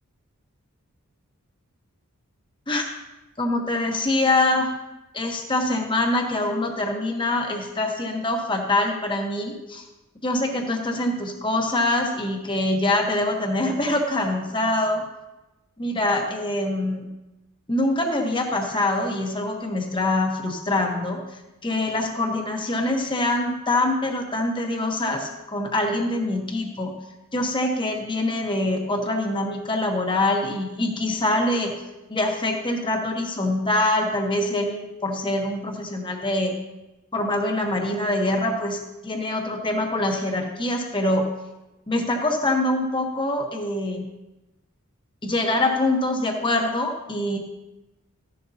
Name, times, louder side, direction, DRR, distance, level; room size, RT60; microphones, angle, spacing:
voice 1, 3.4-4.7 5.1-9.9 10.2-15.0 15.8-17.1 17.7-26.9 27.3-31.8 32.1-36.5 37.1-41.3 41.9-44.1 45.2-47.4, left 1 dB, 20° left, 3 dB, 1.1 m, -24 dB
14.0 x 11.0 x 2.8 m, 1.0 s
head